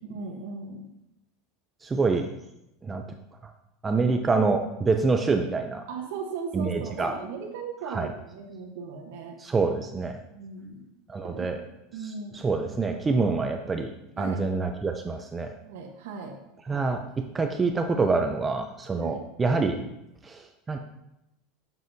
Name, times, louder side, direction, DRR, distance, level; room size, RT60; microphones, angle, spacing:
voice 1, 0.0-0.8 5.9-9.4 10.2-10.9 11.2-11.6 11.9-12.5 14.2-14.4 15.6-16.4 19.0-19.2, right 5 dB, 80° right, 0 dB, 1.0 m, -37 dB
voice 2, 1.8-2.3 2.8-3.0 3.8-5.8 6.5-7.1 7.9-8.1 9.4-10.2 11.1-11.6 12.3-13.9 14.2-15.5 16.7-17.0 17.3-19.8 20.2-20.8, right 4 dB, 15° right, 5 dB, 0.3 m, -26 dB
7.4 x 5.9 x 2.6 m, 0.86 s
supercardioid pair, 165°, 0 cm